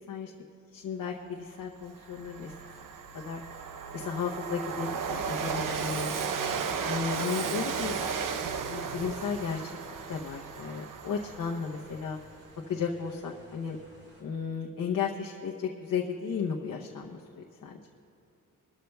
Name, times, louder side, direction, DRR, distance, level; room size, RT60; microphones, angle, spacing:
voice 1, 0.7-2.5 3.2-6.1 6.8-7.9 8.7-9.7 10.1-12.2 12.7-13.8 14.2-17.8, left 6 dB, 70° left, -1 dB, 0.8 m, -34 dB
Train, 1.3-1.4 1.8-12.2, right 6 dB, 70° right, 0.7 m, -35 dB
sound 1, 6.5-14.2, equal, 40° right, 2.9 m, -57 dB
22.5 x 13.0 x 2.3 m, 2.7 s
wide cardioid pair, 165°, 33 cm